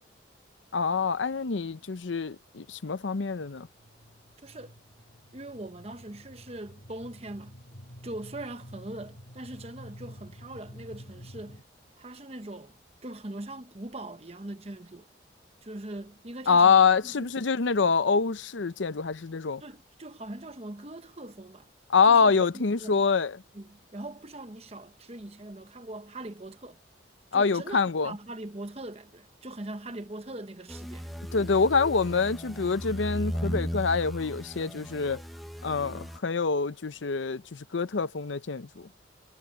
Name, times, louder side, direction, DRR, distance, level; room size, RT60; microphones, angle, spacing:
voice 1, 0.7-3.7 16.5-19.6 21.9-23.4 27.3-28.1 31.3-35.2 35.6-38.7, left 5 dB, 85° left, 0.7 m, -25 dB
sound 1, 3.7-11.6, equal, 65° left, 6.3 m, -49 dB
voice 2, 4.4-4.7 5.3-7.5 8.0-11.6 12.0-15.1 15.6-17.3 19.6-21.7 22.0-23.0 23.5-26.8 27.3-31.1, right 1 dB, 35° right, 1.1 m, -41 dB
sound 2, 30.7-36.2, equal, ahead, 1.0 m, -36 dB
head